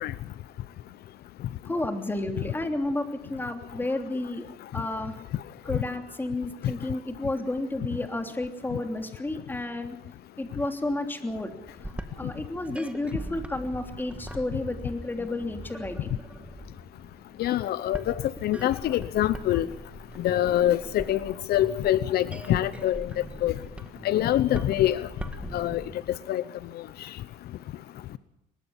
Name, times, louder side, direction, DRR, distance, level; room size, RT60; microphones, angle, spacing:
voice 1, 1.6-4.5 4.7-5.2 5.6-10.0 10.4-11.5 11.8-16.2, left 2 dB, 10° left, 5 dB, 3.1 m, -31 dB
sound 1, 11.6-26.0, right 1 dB, 5° right, 1.9 m, -41 dB
voice 2, 17.4-18.1 18.4-19.7 20.2-23.1 23.4-23.5 24.0-25.1 25.5-25.8 26.3-26.4, left 13 dB, 70° left, 15 dB, 0.9 m, -25 dB
22.5 x 21.0 x 7.2 m, 0.79 s
cardioid pair, 110°, 17 cm